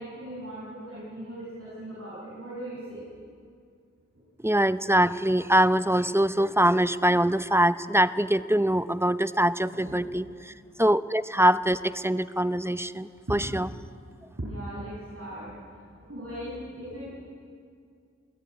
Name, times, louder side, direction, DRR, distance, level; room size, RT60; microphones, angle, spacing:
voice 1, 0.0-3.0 8.9-9.0 9.4-10.0 14.4-15.5 15.9-17.1, right 1 dB, 50° right, -9 dB, 7.6 m, -39 dB
voice 2, 4.4-10.5 10.8-13.7, right 1 dB, 10° right, 13 dB, 0.8 m, -23 dB
27.5 x 16.5 x 9.8 m, 2.3 s
wide cardioid pair, 40°, 29 cm